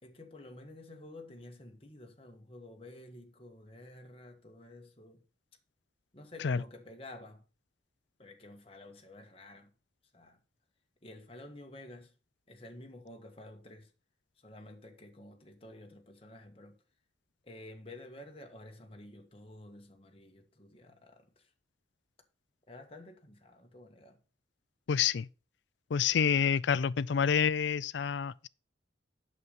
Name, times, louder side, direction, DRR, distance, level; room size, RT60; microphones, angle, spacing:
voice 1, 0.0-5.2 6.1-7.4 8.2-9.7 10.1-10.4 11.0-12.1 12.5-13.9 14.4-16.8 17.4-21.5 22.7-24.2, left 1 dB, 30° left, 1.4 m, -51 dB
voice 2, 24.9-25.3 25.9-28.5, left 7 dB, 70° left, 0.4 m, -28 dB
8.2 x 6.7 x 5.3 m
head